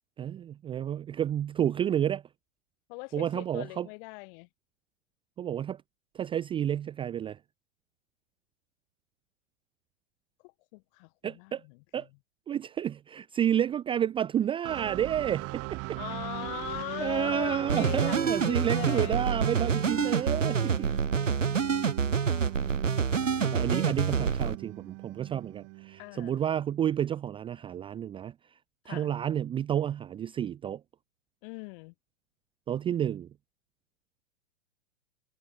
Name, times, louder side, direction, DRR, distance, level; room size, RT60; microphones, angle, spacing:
voice 1, 0.2-2.2 3.1-3.9 5.4-5.8 6.1-7.4 11.2-11.6 11.9-12.1 12.5-15.8 17.0-20.9 23.4-28.3 28.9-30.8 32.7-33.3, right 10 dB, 15° right, 0.6 m, -30 dB
voice 2, 2.9-4.5 10.4-12.1 16.0-19.2 20.5-21.6 26.0-26.4 28.9-29.1 31.4-31.9, left 31 dB, 45° left, 6.9 m, -40 dB
sound 1, 14.6-26.4, right 28 dB, 40° right, 5.2 m, -40 dB
sound 2, 17.7-24.5, right 6 dB, 90° right, 1.7 m, -27 dB
hypercardioid pair, 110°, 37 cm